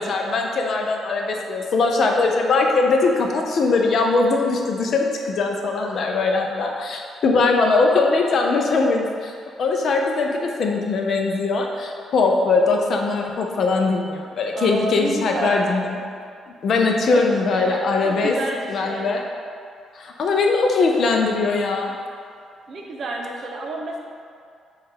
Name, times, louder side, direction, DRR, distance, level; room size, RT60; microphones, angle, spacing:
voice 1, 0.0-9.3 9.6-16.0 16.6-18.4 18.7-19.2 19.9-21.9, left 3 dB, 60° left, 1 dB, 0.5 m, -21 dB
voice 2, 14.5-15.8 17.1-17.2 17.5-19.1 22.7-24.0, right 2 dB, 55° right, 0 dB, 0.6 m, -30 dB
4.5 x 2.4 x 4.6 m, 2.4 s
cardioid pair, 90°, 0 cm